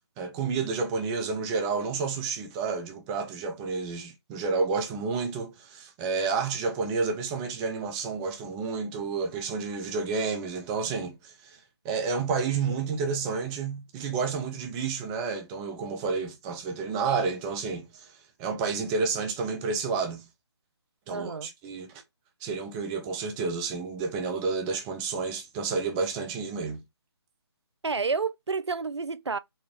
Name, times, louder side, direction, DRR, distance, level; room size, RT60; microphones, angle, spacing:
voice 1, 0.2-11.6 11.8-18.1 18.4-20.2 21.1-21.9 22.4-26.8, right 4 dB, 10° right, 0.5 m, -30 dB
voice 2, 21.1-21.5 27.8-29.4, right 4 dB, 85° right, 0.4 m, -30 dB
4.2 x 2.1 x 3.5 m
figure-of-eight pair, 145°, 14 cm